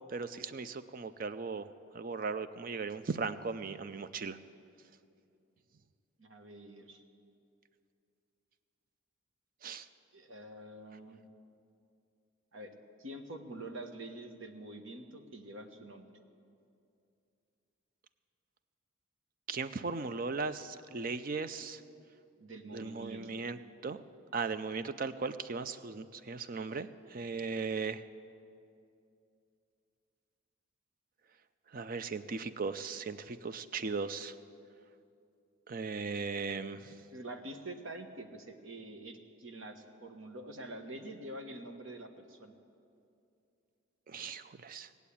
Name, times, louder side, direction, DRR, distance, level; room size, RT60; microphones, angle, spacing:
voice 1, 0.1-1.7 1.9-4.4 9.6-9.9 19.5-21.8 22.7-24.0 24.3-28.0 31.7-34.3 35.7-36.9 44.1-44.9, right 4 dB, 40° right, 13 dB, 0.5 m, -37 dB
voice 2, 6.2-7.0 10.1-11.2 12.5-16.1 22.4-23.4 37.1-42.5, right 1 dB, 70° right, 6 dB, 1.2 m, -46 dB
18.5 x 8.1 x 8.5 m, 2.6 s
head